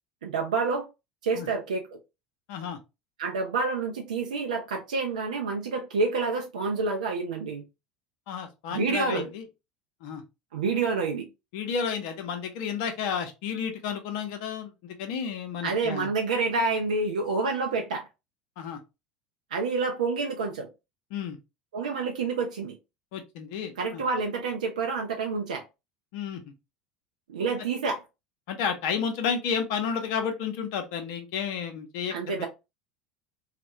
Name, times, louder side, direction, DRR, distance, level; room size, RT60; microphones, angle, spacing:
voice 1, 0.2-0.9 1.2-2.0 3.2-7.6 8.7-9.3 10.5-11.3 15.6-18.0 19.5-20.7 21.7-22.8 23.8-25.6 27.3-28.0 32.1-32.5, right 4 dB, 75° right, 0.4 m, -28 dB
voice 2, 8.3-9.4 10.0-10.2 11.5-16.1 18.6-18.8 21.1-21.4 23.1-24.0 26.1-26.4 28.5-32.5, left 7 dB, 60° left, 0.5 m, -31 dB
2.3 x 2.1 x 2.9 m
figure-of-eight pair, 75°, 4 cm